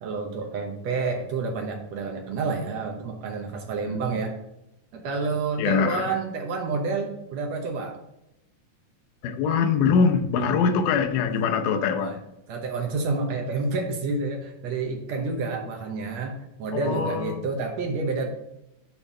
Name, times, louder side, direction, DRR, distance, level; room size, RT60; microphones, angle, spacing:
voice 1, 0.0-4.3 4.9-8.0 10.5-10.8 11.9-12.2 12.5-18.3, right 4 dB, 70° right, 2 dB, 1.9 m, -29 dB
voice 2, 5.6-6.1 9.2-12.2 16.7-17.5, left 6 dB, 90° left, 6 dB, 2.4 m, -23 dB
7.1 x 4.5 x 5.4 m, 0.86 s
omnidirectional pair, 3.6 m